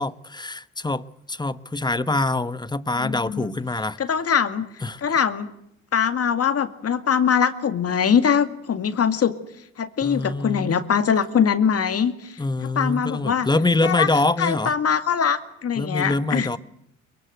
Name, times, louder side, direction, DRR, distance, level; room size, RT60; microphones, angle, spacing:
voice 1, 0.0-4.0 4.8-5.0 10.0-10.8 12.4-14.7 15.8-16.6, left 2 dB, 15° left, 1.0 m, -25 dB
voice 2, 3.0-3.5 4.0-4.7 5.0-5.5 5.9-9.3 9.8-12.4 12.8-13.5 13.8-14.1 14.4-16.5, left 7 dB, 50° left, 2.2 m, -22 dB
23.0 x 23.0 x 8.0 m
cardioid pair, 90°, 30 cm